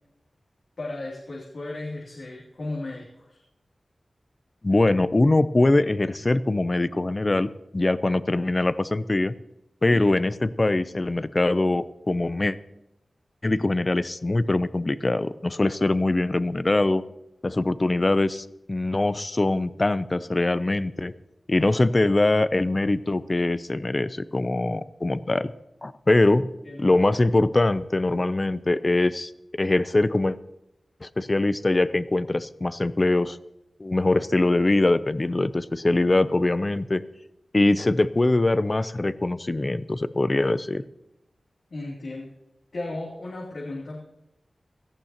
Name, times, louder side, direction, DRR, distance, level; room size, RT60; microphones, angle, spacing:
voice 1, 0.8-3.4 9.9-10.1 26.6-26.9 41.7-42.3 42.7-44.0, left 2 dB, 75° left, -4 dB, 2.8 m, -35 dB
voice 2, 4.6-9.3 9.8-12.6 13.4-17.0 17.4-21.1 21.5-25.5 25.8-26.4 26.8-29.3 29.6-30.4 31.0-33.4 33.8-37.0 37.5-40.8, left 2 dB, 30° left, 14 dB, 0.6 m, -22 dB
17.5 x 14.5 x 2.9 m, 0.89 s
wide cardioid pair, 90°, 0 cm